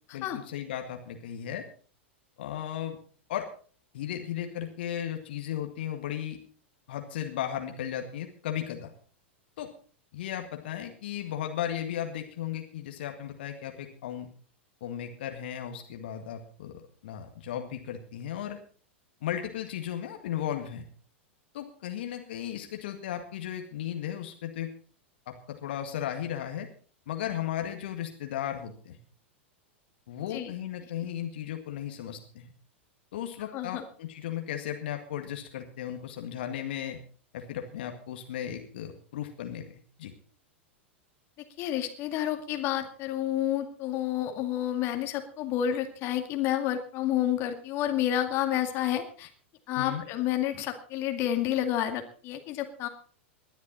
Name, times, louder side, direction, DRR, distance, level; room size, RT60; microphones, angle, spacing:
voice 1, 0.1-1.6 2.4-3.0 3.3-3.5 3.9-6.4 6.9-8.9 9.6-9.7 10.1-14.3 14.8-18.6 19.2-20.8 21.5-24.7 25.3-26.7 27.1-29.0 30.1-32.5 33.1-37.0 37.3-39.7 40.0-40.1 49.8-50.0, left 10 dB, 55° left, 5 dB, 1.9 m, -35 dB
voice 2, 41.6-49.3 49.7-52.9, left 11 dB, 40° left, 6 dB, 2.2 m, -29 dB
20.0 x 11.5 x 4.2 m, 0.42 s
figure-of-eight pair, 90°, 6 cm